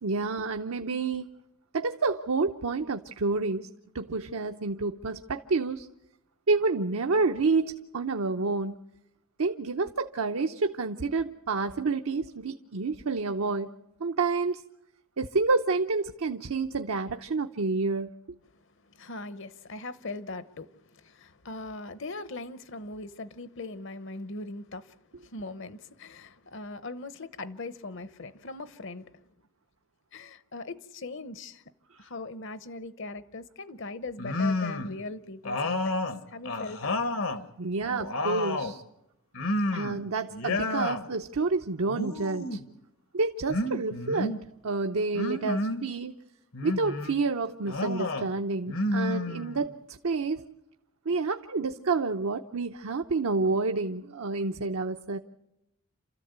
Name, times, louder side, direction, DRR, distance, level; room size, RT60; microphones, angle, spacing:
voice 1, 0.0-1.3 1.7-3.7 3.9-5.9 6.5-8.8 9.4-13.7 14.0-14.6 15.2-18.1 37.6-38.8 39.7-42.6 43.1-46.1 46.6-50.5 51.1-55.2, right 3 dB, 75° right, 0.8 m, -29 dB
voice 2, 18.9-29.3 30.1-31.6 32.0-37.0, left 3 dB, 55° left, 0.9 m, -40 dB
sound 1, 34.2-35.0 35.4-37.4 37.8-38.8 39.3-40.0 40.3-41.0 41.9-42.7 43.5-44.4 45.1-45.9 46.5-47.1 47.7-48.3 48.7-49.8, left 2 dB, 75° left, 1.3 m, -30 dB
28.5 x 13.5 x 8.1 m
head